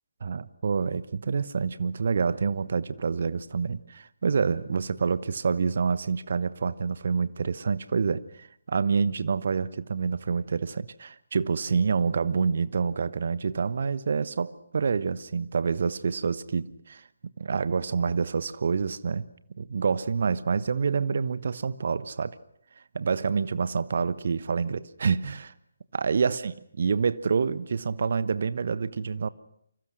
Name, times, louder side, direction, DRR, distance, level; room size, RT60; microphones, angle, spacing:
voice 1, 0.2-17.0 17.4-19.2 19.6-22.4 22.9-25.5 25.9-26.5 26.8-29.3, right 5 dB, 50° right, 15 dB, 1.1 m, -27 dB
28.5 x 25.5 x 6.4 m, 0.72 s
figure-of-eight pair, 145°, 0 cm